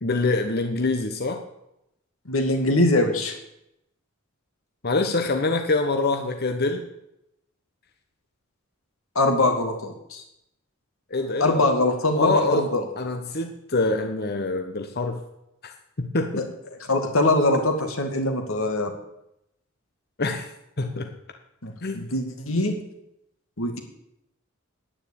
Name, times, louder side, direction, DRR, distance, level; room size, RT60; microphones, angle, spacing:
voice 1, 0.0-1.4 4.8-6.9 11.1-11.7 12.2-12.7 13.0-15.2 16.0-16.5 20.2-20.5 20.8-21.1 21.8-22.1, left 3 dB, 50° left, 5 dB, 1.1 m, -25 dB
voice 2, 2.3-3.4 9.2-10.2 11.4-12.9 16.4-16.5 16.9-18.9 21.6-22.8 23.6-23.8, left 2 dB, 75° left, 5 dB, 2.4 m, -22 dB
10.0 x 9.6 x 8.6 m, 0.82 s
head